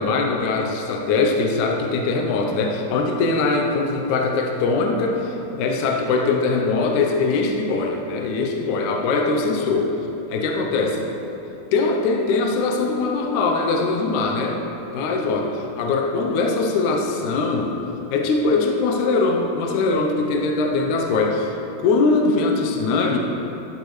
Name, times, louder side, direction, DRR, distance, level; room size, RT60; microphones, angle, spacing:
voice 1, 0.0-9.9 10.3-11.0 11.7-14.6 14.9-15.5 15.8-17.8 18.1-23.2, left 3 dB, 70° left, 1 dB, 2.0 m, -21 dB
13.5 x 9.4 x 3.2 m, 3.0 s
omnidirectional pair, 4.1 m